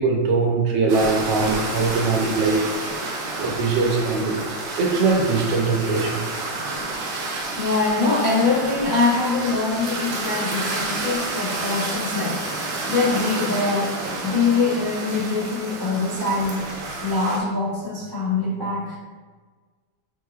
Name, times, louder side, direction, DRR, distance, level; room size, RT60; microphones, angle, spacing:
voice 1, 0.0-2.7 3.4-4.4 4.8-6.3 14.2-14.4, right 4 dB, 80° right, 1 dB, 1.4 m, -21 dB
sound 1, 0.9-17.4, right 2 dB, 60° right, 0.9 m, -30 dB
voice 2, 7.6-19.0, left 3 dB, 30° left, -8 dB, 0.4 m, -23 dB
5.5 x 3.1 x 2.3 m, 1.4 s
omnidirectional pair, 1.9 m